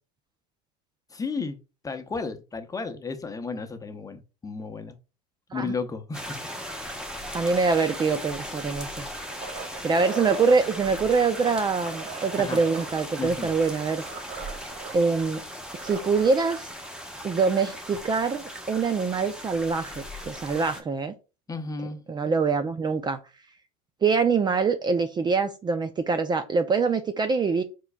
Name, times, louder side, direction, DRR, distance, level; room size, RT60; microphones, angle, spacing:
voice 1, 1.1-1.6 1.8-5.0 5.5-6.7 12.4-12.6 13.2-13.5 21.5-22.0, left 4 dB, 20° left, 0.8 m, -33 dB
sound 1, 6.1-20.8, equal, 5° right, 1.1 m, -38 dB
voice 2, 7.3-9.1 9.8-14.0 14.9-15.4 15.8-16.7 17.2-21.1 22.1-23.2 24.0-27.6, right 4 dB, 20° right, 0.5 m, -24 dB
sound 2, 8.7-10.6 11.2-15.0 15.3-15.4 15.6-16.4 17.9-18.0, right 5 dB, 60° right, 1.6 m, -39 dB
4.5 x 4.5 x 2.2 m
hypercardioid pair, 85°, 19 cm